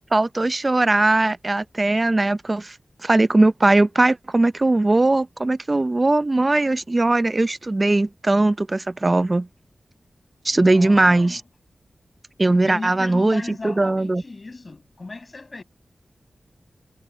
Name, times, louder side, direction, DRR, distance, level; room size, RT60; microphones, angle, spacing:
voice 1, 0.1-2.8 3.0-9.5 10.4-11.4 12.4-14.2, right 2 dB, 30° right, 0.6 m, -19 dB
voice 2, 10.5-11.4 12.6-15.6, left 3 dB, 40° left, 7.4 m, -36 dB
wide cardioid pair, 110°, 0 cm